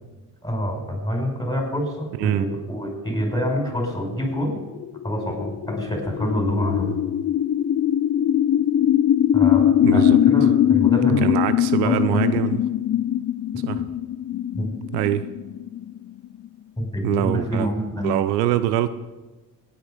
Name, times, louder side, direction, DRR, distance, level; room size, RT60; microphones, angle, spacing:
voice 1, 0.4-4.6 5.0-6.9 9.3-11.3 11.8-12.2 13.7-13.8 14.5-14.8 16.8-18.1, equal, 10° left, 2 dB, 5.3 m, -27 dB
sound 1, 4.4-16.5, left 10 dB, 30° left, 0.5 m, -21 dB
voice 2, 9.8-10.2 11.1-12.6 13.6-13.8 14.9-15.3 17.0-17.7 18.0-18.9, right 13 dB, 80° right, 14 dB, 0.8 m, -23 dB
17.5 x 8.9 x 5.1 m, 1.1 s
hypercardioid pair, 55°, 48 cm